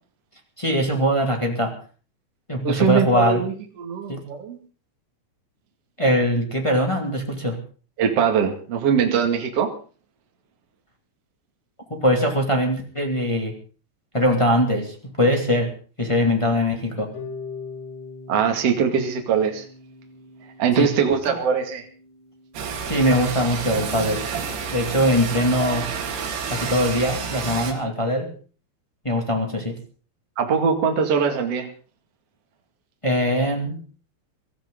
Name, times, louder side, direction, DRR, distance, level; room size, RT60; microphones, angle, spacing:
voice 1, 0.6-1.7 2.5-3.4 4.1-4.2 6.0-7.6 11.9-13.5 14.1-15.7 16.0-17.1 20.8-20.9 21.2-21.3 22.8-24.2 24.7-25.9 26.5-28.3 29.0-29.8 33.0-33.8, equal, 10° left, 1 dB, 1.4 m, -22 dB
voice 2, 2.6-3.5 3.8-4.6 8.0-9.7 18.3-19.6 20.6-21.8 30.4-31.7, right 7 dB, 45° right, 3 dB, 2.8 m, -21 dB
Harp, 17.1-23.2, left 4 dB, 80° left, 6.5 m, -41 dB
sound 1, 22.5-27.7, right 6 dB, 70° right, 4.3 m, -29 dB
23.5 x 14.5 x 3.8 m, 0.38 s
omnidirectional pair, 4.7 m